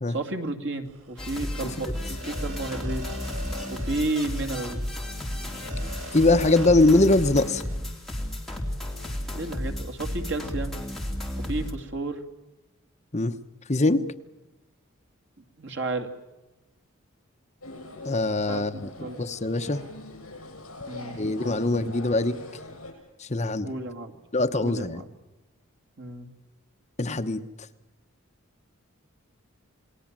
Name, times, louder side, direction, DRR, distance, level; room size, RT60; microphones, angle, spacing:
voice 1, 0.1-3.1 3.7-4.8 9.3-10.8 11.4-12.2 15.6-16.1 18.4-19.2 20.9-21.2 23.4-24.2 24.6-25.1 26.0-26.3, right 2 dB, 55° right, 5 dB, 2.6 m, -32 dB
sound 1, 0.9-7.8, equal, 80° right, 4.5 m, -43 dB
sound 2, 1.2-11.7, left 1 dB, ahead, 3.7 m, -33 dB
voice 2, 6.1-7.6 13.1-13.4 13.7-14.0 18.0-19.8 21.1-22.4 23.2-23.7 24.3-25.0 27.0-27.4, left 2 dB, 30° left, 8 dB, 0.9 m, -22 dB
sound 3, 17.6-22.9, left 2 dB, 75° left, 7.6 m, -42 dB
28.5 x 20.0 x 7.5 m, 1.0 s
head